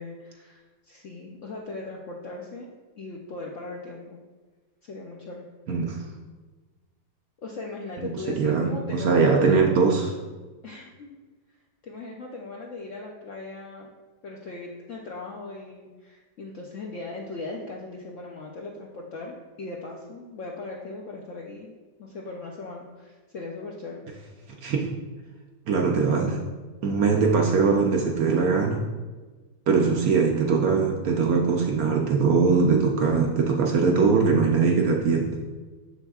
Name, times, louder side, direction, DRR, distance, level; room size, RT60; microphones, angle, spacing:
voice 1, 0.0-2.7 3.0-4.2 4.8-5.5 7.4-9.6 10.6-11.2 11.8-13.9 14.2-24.0, left 3 dB, 70° left, -1 dB, 0.7 m, -38 dB
voice 2, 5.7-6.0 8.0-10.1 24.6-24.9 25.7-26.4 26.8-28.8 29.7-35.4, right 5 dB, 70° right, 1 dB, 0.9 m, -21 dB
6.7 x 6.2 x 2.3 m, 1.3 s
omnidirectional pair, 1.9 m